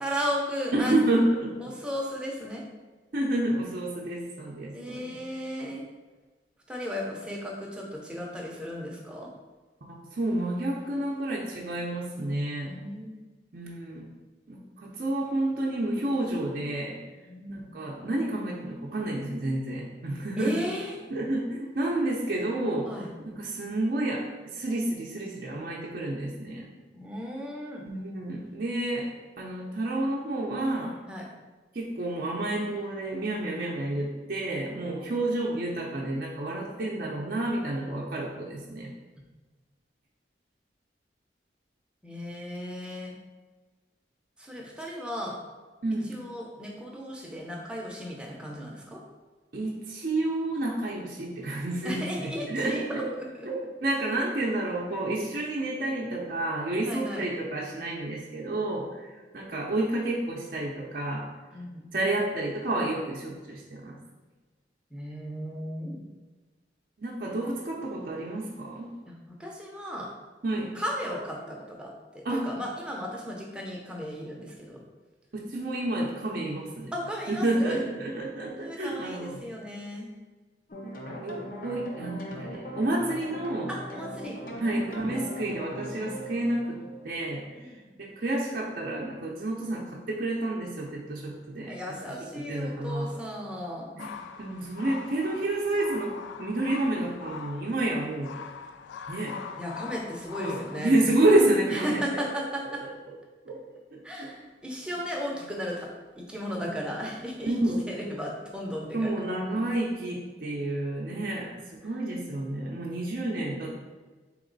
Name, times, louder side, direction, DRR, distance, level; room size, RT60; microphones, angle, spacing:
voice 1, 0.0-1.0 1.6-2.6 4.7-5.8 6.7-9.3 12.6-13.1 17.3-17.8 20.4-21.0 22.9-23.1 26.9-27.9 31.1-31.2 42.0-43.2 44.4-45.4 46.1-49.0 51.8-53.5 56.8-57.2 61.5-61.9 64.9-66.1 69.1-70.1 70.7-74.8 76.9-77.8 78.6-80.1 83.7-84.7 87.6-87.8 91.7-93.9 99.6-101.0 101.7-102.8 104.0-105.9 106.2-107.5 107.9-109.4, equal, 5° right, -2 dB, 0.6 m, -35 dB
voice 2, 0.7-1.7 3.1-5.2 9.9-12.7 13.5-14.1 14.5-17.0 17.5-20.6 21.1-22.9 23.3-26.7 27.9-31.0 31.7-38.9 45.8-46.2 49.5-53.1 53.5-61.3 61.9-64.0 67.0-68.9 70.4-70.7 72.2-72.4 75.3-76.9 77.3-79.4 81.2-83.7 84.5-87.7 88.0-91.8 92.5-93.1 94.0-94.1 94.4-98.3 99.1-99.4 100.4-102.0 103.5-103.6 103.9-104.3 107.4-107.9 108.9-113.7, right 1 dB, 50° right, -3 dB, 0.5 m, -29 dB
sound 1, 80.7-87.7, equal, 50° left, 0.6 m, -39 dB
sound 2, 94.0-100.9, left 6 dB, 85° left, 0.3 m, -42 dB
4.1 x 3.0 x 3.9 m, 1.3 s
head